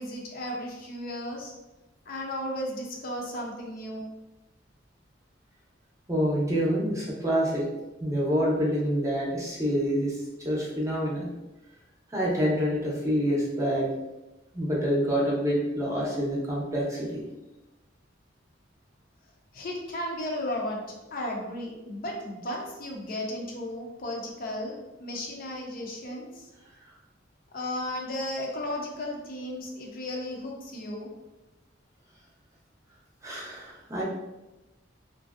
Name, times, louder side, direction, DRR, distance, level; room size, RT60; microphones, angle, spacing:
voice 1, 0.0-1.5 2.1-4.0 19.5-20.8 21.1-26.5 27.5-31.1, left 1 dB, 50° left, -1 dB, 0.5 m, -34 dB
voice 2, 6.1-7.6 8.0-11.3 12.1-13.9 14.5-17.2 33.2-34.0, equal, 15° right, -5 dB, 0.6 m, -27 dB
3.0 x 2.5 x 2.4 m, 1.0 s
head